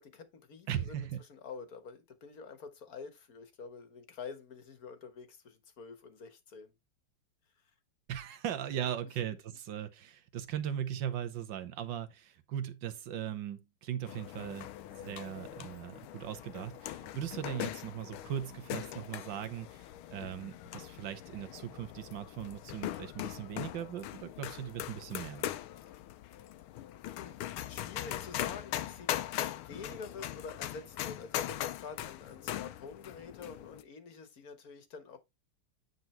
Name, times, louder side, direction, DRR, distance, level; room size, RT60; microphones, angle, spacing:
voice 1, 0.0-6.7 27.0-35.2, left 5 dB, 45° left, 1.6 m, -47 dB
voice 2, 0.7-1.2 8.1-25.5, right 10 dB, 60° right, 1.7 m, -39 dB
sound 1, 14.1-33.8, left 13 dB, 80° left, 1.5 m, -41 dB
9.5 x 4.0 x 4.4 m
omnidirectional pair, 2.4 m